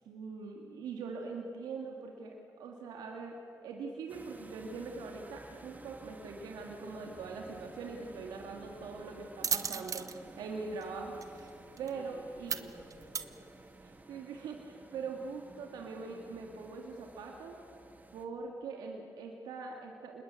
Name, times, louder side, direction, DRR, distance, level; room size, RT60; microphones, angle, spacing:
voice 1, 0.1-3.4 3.6-10.0 10.4-11.5 11.8-12.7 13.8-17.6 18.1-20.2, right 4 dB, 85° right, 1 dB, 2.3 m, -42 dB
sound 1, 4.1-18.3, right 2 dB, 25° right, 2.3 m, -54 dB
sound 2, 7.1-14.0, right 6 dB, 55° right, 1.3 m, -40 dB
voice 2, 9.7-10.4 11.8-13.4, left 1 dB, 30° left, 4 dB, 3.5 m, -55 dB
27.5 x 21.0 x 8.5 m, 2.4 s
supercardioid pair, 50°, 7 cm